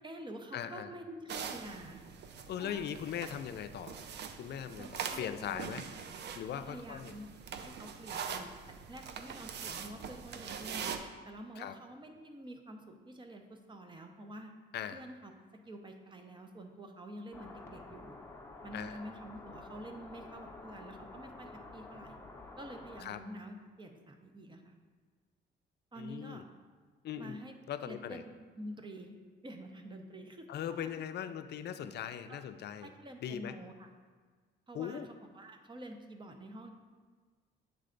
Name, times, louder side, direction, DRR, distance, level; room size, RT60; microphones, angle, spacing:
voice 1, 0.0-2.0 2.6-2.9 4.8-5.7 6.6-7.2 7.6-14.5 14.9-18.2 18.6-22.2 22.6-24.8 25.9-26.4 27.2-27.5 27.8-28.3 28.6-29.2 29.4-30.9 32.3-32.5 32.8-33.9 34.7-35.1 35.3-36.7, right 1 dB, 25° right, 5 dB, 0.7 m, -48 dB
voice 2, 0.5-0.9 2.5-4.0 4.4-5.9 6.4-7.2 11.6-11.8 14.7-15.0 18.7-19.0 23.0-23.2 26.0-26.4 27.0-27.4 27.7-28.2 30.5-32.9 33.2-33.6 34.7-35.1, left 9 dB, 60° left, 10 dB, 0.4 m, -40 dB
sound 1, 1.3-11.0, right 6 dB, 60° right, 0.5 m, -43 dB
sound 2, 17.3-23.0, left 2 dB, 10° left, 0.8 m, -50 dB
8.2 x 3.2 x 3.9 m, 1.5 s
cardioid pair, 90°, 20 cm